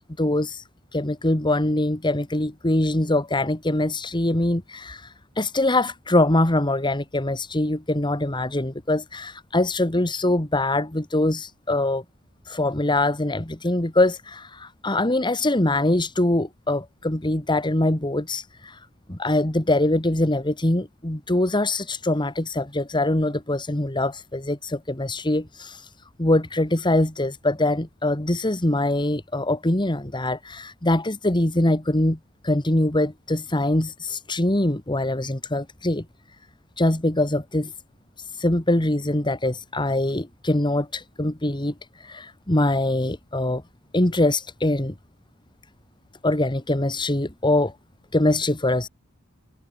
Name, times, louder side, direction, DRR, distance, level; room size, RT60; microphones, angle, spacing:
voice 1, 0.2-0.6 0.9-12.0 12.5-18.8 19.1-25.9 26.2-32.2 32.4-36.1 36.8-37.7 38.2-43.6 43.9-44.9 46.2-47.7 48.1-48.9, left 1 dB, 20° left, 2.0 m, -23 dB
head